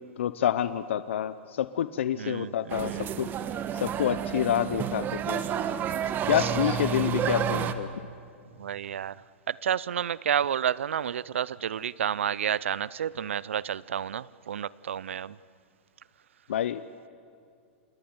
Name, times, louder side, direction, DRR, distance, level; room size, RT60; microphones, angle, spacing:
voice 1, 0.2-3.3 3.7-5.4 6.3-7.9 16.5-16.8, left 10 dB, 75° left, 14 dB, 0.8 m, -28 dB
voice 2, 2.2-3.1 6.4-6.5 8.6-9.2 9.5-15.4, right 9 dB, 85° right, 22 dB, 0.5 m, -30 dB
sound 1, 2.7-7.7, right 8 dB, 30° right, 1.4 m, -30 dB
28.5 x 17.5 x 9.5 m, 2.4 s
hypercardioid pair, 120°, 7 cm